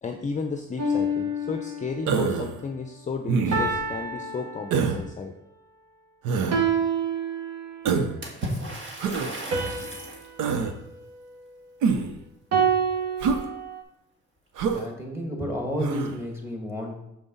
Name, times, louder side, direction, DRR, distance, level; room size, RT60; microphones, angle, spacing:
voice 1, 0.0-5.4, left 4 dB, 25° left, 5 dB, 0.6 m, -33 dB
sound 1, 0.8-2.1 3.5-5.1 6.5-8.0 9.5-11.9 12.5-13.8, right 3 dB, 55° right, 1.3 m, -28 dB
Human voice, 2.1-2.5 3.3-3.8 4.7-5.0 6.2-6.6 7.8-8.2 9.0-9.3 10.4-10.7 11.8-12.2 13.2-13.4 14.6-14.9 15.8-16.1, right 5 dB, 90° right, 0.7 m, -25 dB
Water / Splash splatter, 8.2-10.3, right 1 dB, 40° right, 1.7 m, -34 dB
voice 2, 14.7-17.0, equal, 10° right, 1 dB, 1.9 m, -31 dB
6.4 x 5.4 x 4.0 m, 0.86 s
cardioid pair, 90°, 30 cm